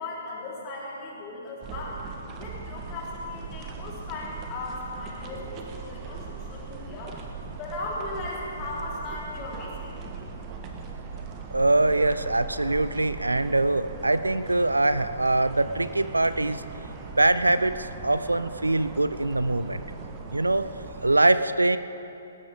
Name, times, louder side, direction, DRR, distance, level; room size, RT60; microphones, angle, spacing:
voice 1, 0.0-2.0 2.4-7.1 7.6-10.0, left 2 dB, 25° left, -5 dB, 3.8 m, -37 dB
sound 1, 1.6-21.2, right 4 dB, 25° right, 1.3 m, -39 dB
voice 2, 11.5-16.6 17.2-19.8 20.3-20.7 21.0-21.8, right 2 dB, 80° right, 13 dB, 0.5 m, -23 dB
19.5 x 16.0 x 3.6 m, 3.0 s
figure-of-eight pair, 125°, 0 cm